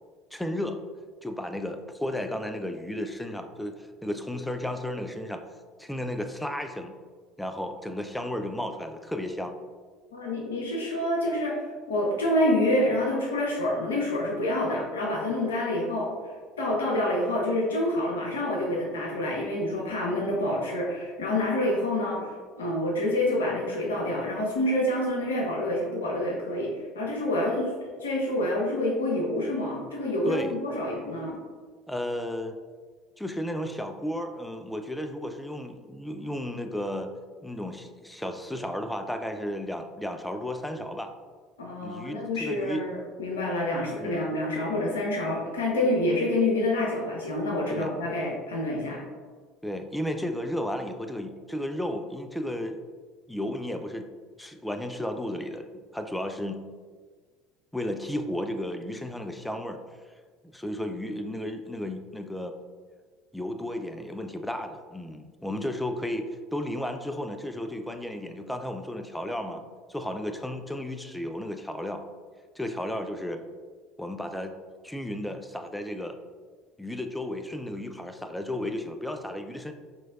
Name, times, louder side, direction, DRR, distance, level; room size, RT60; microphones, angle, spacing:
voice 1, 0.3-0.8 1.2-5.4 5.8-6.9 7.4-9.6 30.3-30.5 31.9-32.5 33.2-37.1 37.4-41.1 41.8-42.8 44.0-44.2 47.7-48.0 49.6-52.8 53.3-54.1 54.4-56.6 57.7-59.8 60.5-62.5 63.3-69.6 69.9-72.0 72.6-73.4 74.0-74.5 74.8-76.2 76.8-79.7, left 1 dB, 5° left, 6 dB, 0.4 m, -33 dB
voice 2, 10.1-11.6 11.9-16.1 16.6-22.2 22.6-31.4 41.6-49.0, left 1 dB, 80° left, -2 dB, 0.8 m, -27 dB
4.0 x 3.0 x 2.4 m, 1.5 s
figure-of-eight pair, 65°, 0 cm